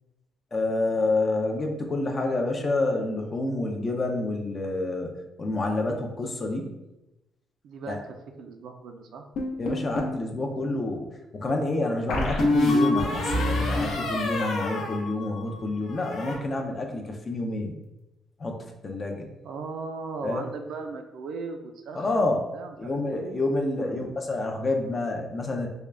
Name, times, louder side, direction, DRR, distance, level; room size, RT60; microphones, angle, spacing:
voice 1, 0.5-5.1 5.4-6.7 7.9-8.0 9.6-11.1 11.3-17.8 18.4-19.3 20.2-20.4 21.9-22.4 22.8-25.7, left 2 dB, 25° left, 2 dB, 0.4 m, -28 dB
voice 2, 7.6-9.3 19.4-23.4 23.8-24.1, right 4 dB, 70° right, 5 dB, 0.4 m, -38 dB
sound 1, 9.4-10.2 12.1-15.6 15.9-16.4, left 2 dB, 70° left, 0.7 m, -26 dB
3.6 x 2.2 x 3.3 m, 0.95 s
cardioid pair, 170°, 0 cm